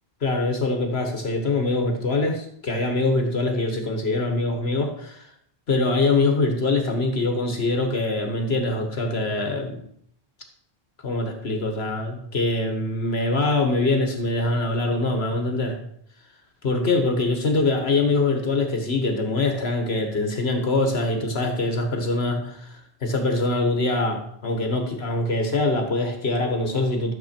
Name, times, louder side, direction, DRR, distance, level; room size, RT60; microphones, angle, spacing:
voice 1, 0.2-5.3 5.7-9.8 11.0-15.8 16.6-27.1, left 2 dB, 70° left, 4 dB, 1.6 m, -24 dB
13.5 x 7.3 x 4.4 m, 0.70 s
omnidirectional pair, 1.1 m